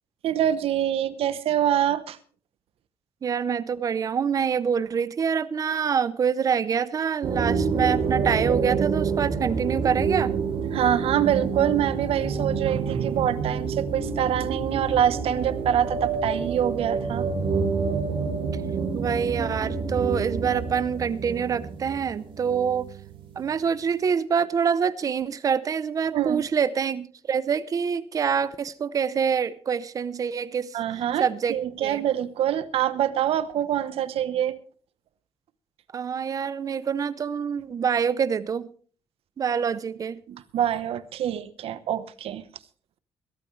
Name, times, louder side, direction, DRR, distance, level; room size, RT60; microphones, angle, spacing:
voice 1, 0.2-2.2 10.7-17.3 26.1-26.5 30.7-34.5 40.3-42.4, right 10 dB, 75° right, 14 dB, 1.0 m, -25 dB
voice 2, 3.2-10.3 18.9-22.9 23.4-30.8 31.2-32.0 35.9-38.7 39.4-40.2, right 7 dB, 35° right, 15 dB, 0.7 m, -26 dB
sound 1, 7.2-23.6, right 5 dB, 60° right, 3.4 m, -28 dB
22.0 x 12.5 x 3.2 m, 0.41 s
cardioid pair, 175°, 10 cm